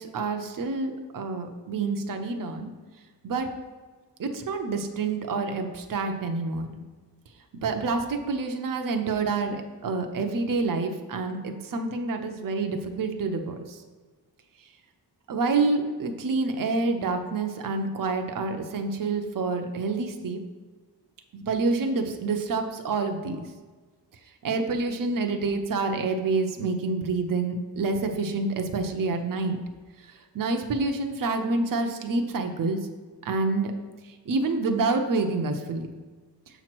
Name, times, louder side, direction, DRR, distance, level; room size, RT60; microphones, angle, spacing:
voice 1, 0.0-2.7 3.2-3.5 4.2-6.8 7.6-13.8 15.3-20.4 21.3-23.4 24.4-29.6 30.3-32.8 33.2-33.7 34.3-35.9, right 3 dB, 50° right, 5 dB, 0.6 m, -27 dB
6.9 x 3.0 x 5.9 m, 1.4 s
wide cardioid pair, 170°, 42 cm